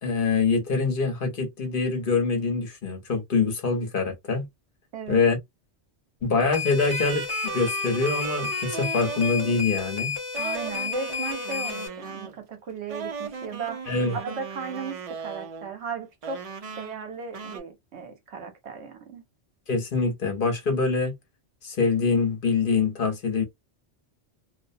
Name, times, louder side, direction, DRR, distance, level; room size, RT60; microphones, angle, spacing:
voice 1, 0.0-4.5 5.1-5.4 6.2-10.2 13.9-14.2 19.7-21.1 21.6-23.4, left 4 dB, 55° left, 1.0 m, -24 dB
sound 1, 6.5-11.9, left 7 dB, 25° left, 0.7 m, -32 dB
sound 2, 6.7-9.6 10.3-12.4 12.9-15.7 16.2-17.1 17.3-17.6, right 6 dB, 45° right, 0.5 m, -36 dB
voice 2, 10.4-13.8 14.1-16.4 16.8-19.2, right 5 dB, 75° right, 0.9 m, -36 dB
2.4 x 2.1 x 2.5 m
omnidirectional pair, 1.1 m